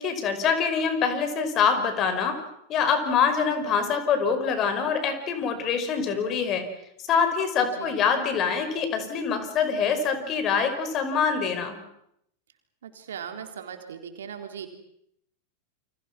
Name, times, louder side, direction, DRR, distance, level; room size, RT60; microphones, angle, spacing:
voice 1, 0.0-2.4 2.7-6.6 7.1-11.8, left 6 dB, 40° left, 8 dB, 5.5 m, -25 dB
voice 2, 7.7-8.0 12.8-14.7, right 8 dB, 75° right, 6 dB, 3.9 m, -39 dB
29.5 x 25.5 x 6.2 m, 0.75 s
figure-of-eight pair, 90°, 0 cm